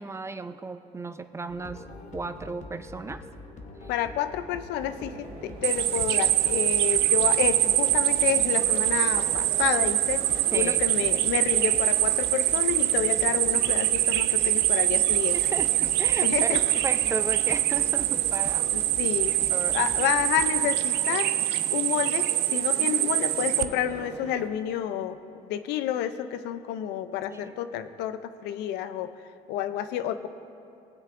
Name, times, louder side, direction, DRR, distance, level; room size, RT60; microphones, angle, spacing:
voice 1, 0.0-1.8 2.1-3.2 3.8-3.9 10.5-10.8 15.3-18.7 19.5-19.8 22.8-23.1 27.3-27.6, right 3 dB, 15° right, 10 dB, 0.4 m, -35 dB
sound 1, 1.5-20.5, left 2 dB, 45° left, 1.0 m, -44 dB
voice 2, 3.9-15.4 16.2-16.6 18.7-19.3 19.7-21.3 21.7-25.2 25.5-29.1 29.5-30.3, left 10 dB, 90° left, 11 dB, 0.5 m, -29 dB
sound 2, 4.8-24.5, right 5 dB, 55° right, 1.1 m, -43 dB
sound 3, 5.6-23.6, right 15 dB, 85° right, 0.4 m, -24 dB
19.5 x 7.5 x 2.5 m, 2.6 s
cardioid pair, 110°, 17 cm